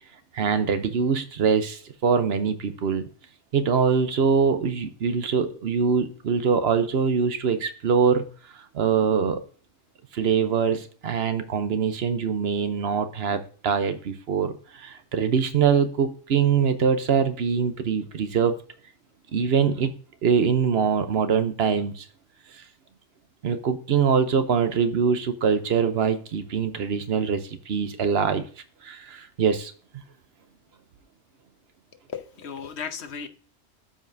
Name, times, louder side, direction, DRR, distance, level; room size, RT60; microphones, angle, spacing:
voice 1, 0.3-3.1 3.5-8.2 8.7-9.4 10.1-18.6 19.3-19.9 20.2-22.1 22.5-22.6 23.4-28.4 28.8-29.7, right 6 dB, 65° right, 1.0 m, -23 dB
voice 2, 32.1-33.3, left 6 dB, 70° left, 1.1 m, -35 dB
12.5 x 5.3 x 2.6 m
omnidirectional pair, 1.2 m